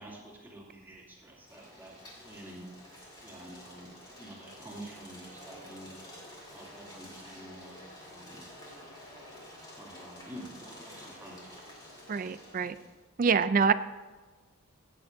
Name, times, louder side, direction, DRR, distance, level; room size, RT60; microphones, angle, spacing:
voice 1, 0.0-1.9 2.2-2.7 3.2-5.9 6.5-7.8 8.1-8.4 9.8-11.5, right 1 dB, 10° right, -6 dB, 2.7 m, -48 dB
sound 1, 1.4-12.9, left 1 dB, 20° left, 3.2 m, -50 dB
voice 2, 12.1-12.8 13.2-13.7, right 5 dB, 40° right, 14 dB, 0.4 m, -25 dB
17.5 x 9.0 x 2.7 m, 1.3 s
head